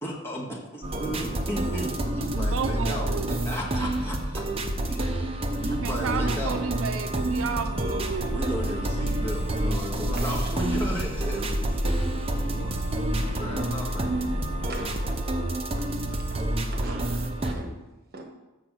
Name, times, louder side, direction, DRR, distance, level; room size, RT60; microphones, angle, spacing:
voice 1, 0.0-4.5 4.9-6.6 8.3-12.9 13.2-14.2, equal, 10° left, -3 dB, 1.6 m, -35 dB
sound 1, 0.8-17.5, right 1 dB, 25° right, 0.7 m, -29 dB
voice 2, 2.2-3.4 5.8-8.4 16.9-17.1, right 6 dB, 65° right, 8 dB, 0.5 m, -32 dB
sound 2, 8.0-15.3, equal, 75° left, 0.7 m, -33 dB
voice 3, 10.2-10.5 11.9-12.0 14.7-15.0 16.0-17.0 17.4-17.7 18.1-18.3, right 3 dB, 45° right, 3 dB, 1.2 m, -43 dB
6.9 x 6.1 x 6.2 m, 1.0 s
head